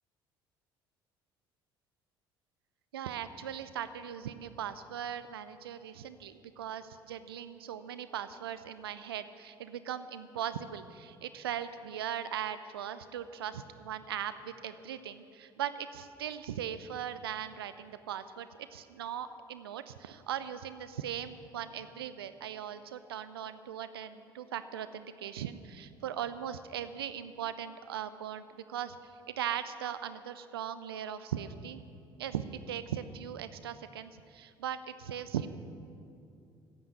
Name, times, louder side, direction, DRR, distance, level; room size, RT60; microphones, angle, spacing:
voice 1, 2.9-18.5 18.7-31.8 32.2-35.5, right 9 dB, 80° right, 13 dB, 0.5 m, -39 dB
14.5 x 9.0 x 7.9 m, 2.5 s
figure-of-eight pair, 55°, 12 cm